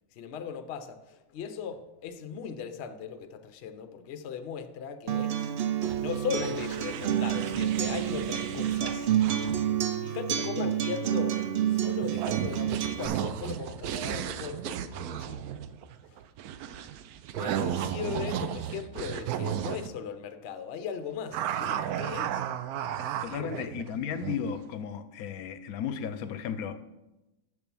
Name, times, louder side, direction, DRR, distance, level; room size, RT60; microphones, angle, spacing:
voice 1, 0.1-5.4 6.0-9.1 9.9-11.4 11.7-15.5 17.3-22.4 23.3-23.7, left 7 dB, 60° left, 0.8 m, -38 dB
Acoustic guitar, 5.1-13.1, right 10 dB, 60° right, 0.6 m, -29 dB
sound 1, 5.8-9.8 12.0-19.9 21.3-24.5, right 10 dB, 85° right, 1.1 m, -34 dB
voice 2, 23.2-26.8, left 7 dB, 75° left, 1.0 m, -35 dB
7.0 x 6.7 x 6.0 m
omnidirectional pair, 1.6 m